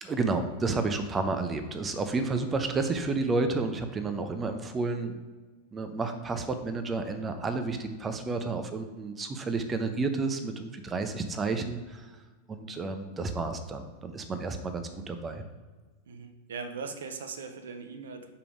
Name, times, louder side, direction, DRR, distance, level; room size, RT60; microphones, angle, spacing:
voice 1, 0.0-5.2 5.7-12.1 12.5-15.4, right 3 dB, 20° right, 7 dB, 0.7 m, -31 dB
voice 2, 16.1-18.3, right 5 dB, 65° right, 7 dB, 0.7 m, -39 dB
5.1 x 4.8 x 4.9 m, 1.3 s
figure-of-eight pair, 90°, 0 cm